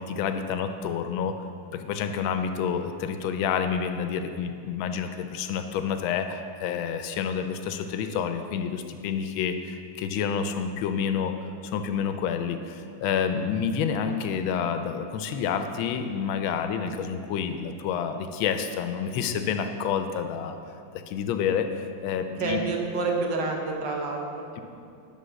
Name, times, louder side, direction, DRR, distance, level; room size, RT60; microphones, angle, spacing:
voice 1, 0.0-1.3 1.7-11.4 11.6-20.6 21.1-22.6, left 7 dB, 80° left, 8 dB, 1.3 m, -29 dB
voice 2, 22.4-24.4, right 3 dB, 65° right, 1 dB, 1.4 m, -28 dB
11.0 x 3.7 x 6.3 m, 2.4 s
omnidirectional pair, 2.3 m